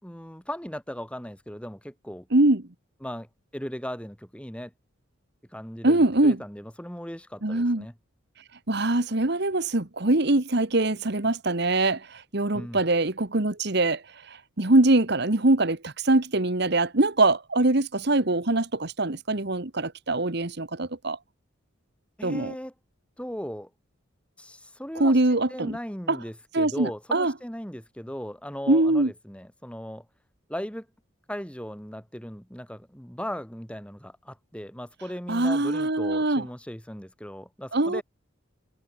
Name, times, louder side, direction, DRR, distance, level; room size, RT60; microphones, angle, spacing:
voice 1, 0.0-2.3 3.0-3.3 3.5-4.7 5.5-7.9 12.5-12.8 22.2-22.7 23.2-23.7 24.4-30.0 30.5-30.9 31.3-38.0, equal, 5° left, 4.6 m, -37 dB
voice 2, 2.3-2.6 5.8-6.4 7.4-7.9 8.7-14.0 14.6-21.2 22.2-22.5 24.9-25.8 26.1-26.2 26.5-27.3 28.7-29.1 35.3-36.4 37.7-38.0, right 2 dB, 55° right, 1.5 m, -23 dB
head